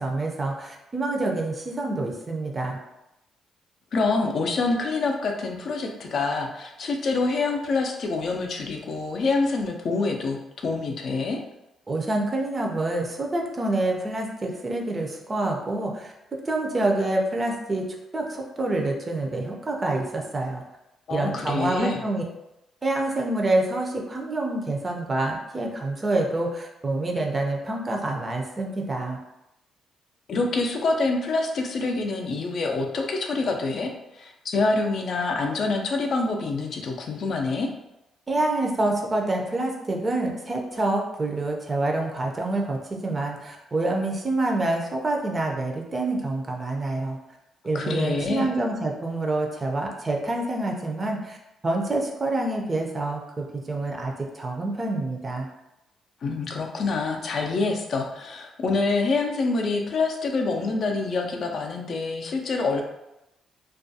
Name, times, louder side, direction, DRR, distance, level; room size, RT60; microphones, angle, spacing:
voice 1, 0.0-2.8 11.9-16.1 16.4-17.9 18.1-20.6 21.1-22.2 22.8-29.2 38.3-47.2 47.6-51.4 51.6-55.5, right 2 dB, 30° right, 1 dB, 0.4 m, -27 dB
voice 2, 3.9-11.4 21.1-22.0 30.3-37.7 47.7-48.5 56.2-62.8, left 3 dB, 55° left, 2 dB, 0.4 m, -26 dB
2.4 x 2.2 x 2.7 m, 0.90 s
cardioid pair, 90°, 0 cm